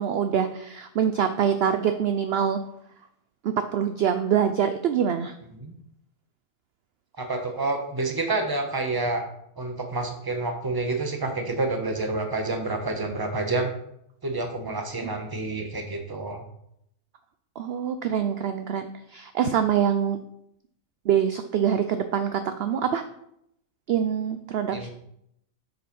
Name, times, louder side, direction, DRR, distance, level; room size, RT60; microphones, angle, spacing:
voice 1, 0.0-2.6 3.4-5.3 17.6-20.2 21.1-23.0 23.9-24.9, right 8 dB, 60° right, 9 dB, 0.7 m, -25 dB
voice 2, 7.2-9.2 9.6-13.7 14.2-16.4 24.7-24.9, right 2 dB, 20° right, 4 dB, 1.0 m, -28 dB
7.4 x 5.2 x 5.4 m, 0.75 s
omnidirectional pair, 1.4 m